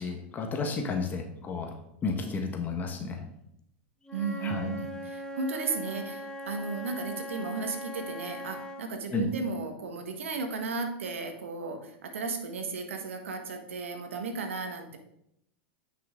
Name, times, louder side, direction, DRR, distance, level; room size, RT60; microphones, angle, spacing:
voice 1, 0.0-1.7 2.0-3.2 4.4-4.7 9.1-9.3, left 4 dB, 25° left, 3 dB, 1.3 m, -32 dB
Wind instrument woodwind instrument, 4.0-8.9, equal, 10° left, 0.9 m, -40 dB
voice 2, 4.1-15.0, right 4 dB, 85° right, 6 dB, 1.4 m, -35 dB
9.3 x 5.7 x 3.7 m, 0.77 s
hypercardioid pair, 110°, 7 cm